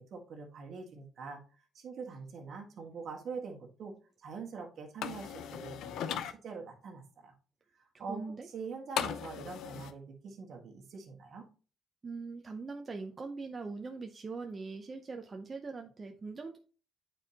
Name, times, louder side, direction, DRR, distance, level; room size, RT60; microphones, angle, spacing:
voice 1, 0.0-1.4 1.7-3.9 4.2-7.3 8.0-8.2 8.5-11.5, right 5 dB, 55° right, 2 dB, 1.6 m, -44 dB
sound 1, 5.0-6.3 9.0-9.9, left 9 dB, 80° left, 0.6 m, -37 dB
voice 2, 8.1-8.5 12.0-16.6, right 4 dB, 30° right, 4 dB, 0.6 m, -41 dB
8.9 x 4.5 x 2.8 m, 0.37 s
cardioid pair, 125°, 0 cm